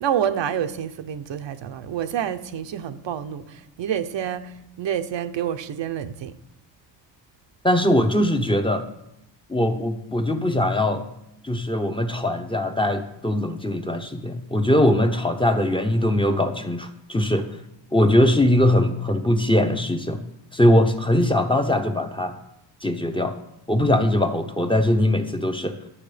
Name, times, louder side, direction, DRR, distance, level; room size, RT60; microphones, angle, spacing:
voice 1, 0.0-6.3, right 9 dB, 75° right, 8 dB, 0.9 m, -28 dB
voice 2, 7.6-8.9 9.5-11.0 11.4-17.5 17.9-20.2 20.5-22.3 22.8-23.3 23.7-25.8, left 1 dB, 10° left, 6 dB, 0.9 m, -21 dB
11.0 x 7.3 x 5.1 m, 0.82 s
cardioid pair, 105°, 45 cm